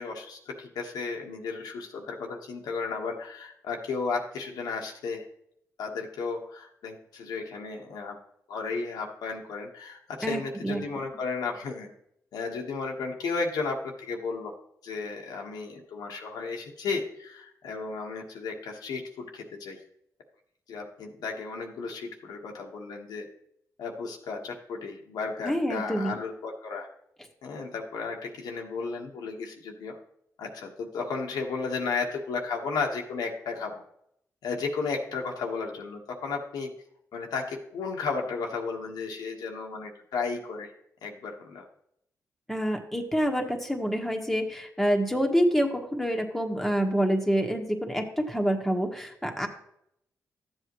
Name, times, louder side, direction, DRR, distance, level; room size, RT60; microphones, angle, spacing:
voice 1, 0.0-5.2 5.8-8.2 8.5-11.9 12.3-14.6 14.8-19.8 20.7-23.3 23.8-26.9 27.4-30.0 30.4-33.8 34.4-36.7 37.1-40.7 41.0-41.6, left 4 dB, 90° left, 1 dB, 1.4 m, -34 dB
voice 2, 10.2-10.8 25.4-26.2 42.5-49.5, equal, ahead, 2 dB, 1.4 m, -27 dB
12.5 x 7.8 x 3.1 m, 0.74 s
cardioid pair, 80°, 7 cm